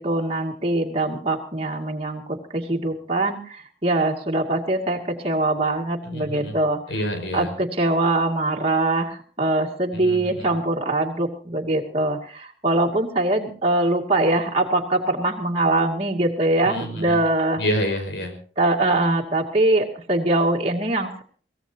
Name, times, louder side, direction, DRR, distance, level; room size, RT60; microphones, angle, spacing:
voice 1, 0.0-6.8 7.3-17.6 18.6-21.2, right 2 dB, 35° right, -1 dB, 2.4 m, -23 dB
voice 2, 6.0-6.6 6.9-7.5 9.9-10.5 16.6-17.2 17.6-18.4, equal, 70° left, 6 dB, 5.3 m, -28 dB
23.0 x 18.0 x 2.9 m, 0.42 s
head